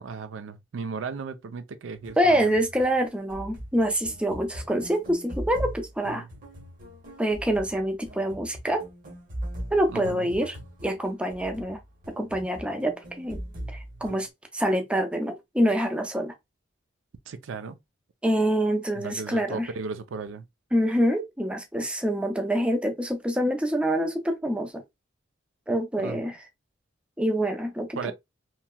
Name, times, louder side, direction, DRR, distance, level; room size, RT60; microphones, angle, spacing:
voice 1, 0.0-2.5 9.9-10.3 17.3-17.8 19.0-20.4 26.0-26.2 28.0-28.1, right 5 dB, 85° right, 0.4 m, -36 dB
sound 1, 1.9-14.3, right 1 dB, 45° right, 1.0 m, -40 dB
voice 2, 2.2-6.2 7.2-8.8 9.7-10.6 10.8-11.8 12.2-13.4 13.7-14.3 14.5-16.3 18.2-19.7 20.7-24.8 25.7-26.4 27.2-28.1, equal, 5° right, 0.4 m, -26 dB
3.0 x 2.8 x 2.2 m
head